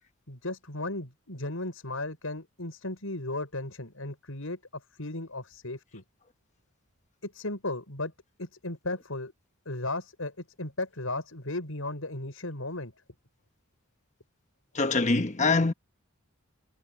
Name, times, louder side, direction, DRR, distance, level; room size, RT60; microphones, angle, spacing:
voice 1, 0.3-6.0 7.2-8.1 8.4-9.3 9.6-12.9, left 2 dB, 80° left, 6.2 m, -35 dB
voice 2, 14.7-15.7, left 3 dB, 35° left, 1.1 m, -24 dB
head